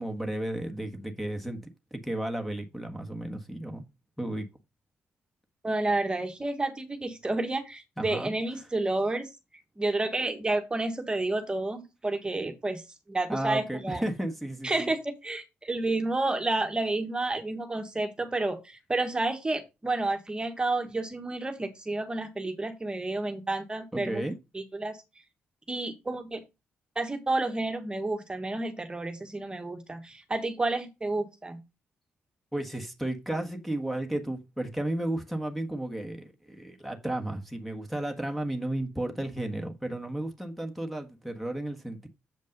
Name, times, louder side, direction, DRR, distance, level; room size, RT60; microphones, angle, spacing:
voice 1, 0.0-1.6 1.9-3.8 4.2-4.5 8.0-8.3 13.3-14.9 23.9-24.3 32.5-42.1, right 1 dB, ahead, 1.5 m, -33 dB
voice 2, 5.6-9.3 9.8-12.8 13.1-14.0 14.6-24.2 24.5-25.0 25.7-26.4 26.9-31.6, right 2 dB, 20° right, 1.4 m, -30 dB
7.6 x 5.3 x 5.2 m
cardioid pair, 90°, 5 cm